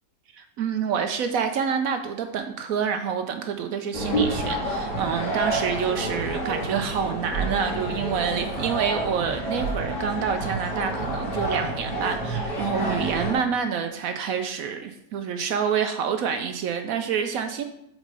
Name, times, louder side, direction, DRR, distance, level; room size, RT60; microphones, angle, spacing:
voice 1, 0.3-17.6, right 7 dB, 70° right, 7 dB, 0.8 m, -27 dB
sound 1, 3.9-13.3, right 1 dB, 75° left, 2.4 m, -29 dB
5.2 x 4.1 x 6.0 m, 0.79 s
omnidirectional pair, 1.8 m